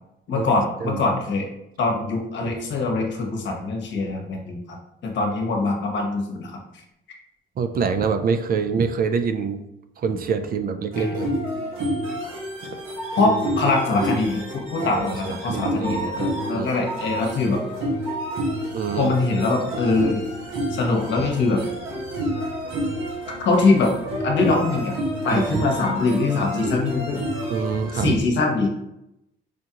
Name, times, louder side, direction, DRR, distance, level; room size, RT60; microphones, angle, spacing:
voice 1, 0.3-1.5 1.8-4.8 5.0-6.6 11.0-11.1 13.2-17.6 19.0-20.2 20.7-21.6 23.4-23.9 24.2-24.9 25.2-27.2 27.9-28.7, left 3 dB, 65° left, 1 dB, 0.9 m, -23 dB
voice 2, 7.6-9.6 10.0-11.3 14.8-16.1 16.5-16.7 18.7-19.1 21.2-21.3 25.3-25.7 27.5-28.2, right 5 dB, 50° right, 9 dB, 0.4 m, -25 dB
sound 1, 10.9-28.1, right 1 dB, 90° right, 1.1 m, -29 dB
5.0 x 2.3 x 2.8 m, 0.84 s
cardioid pair, 90°, 20 cm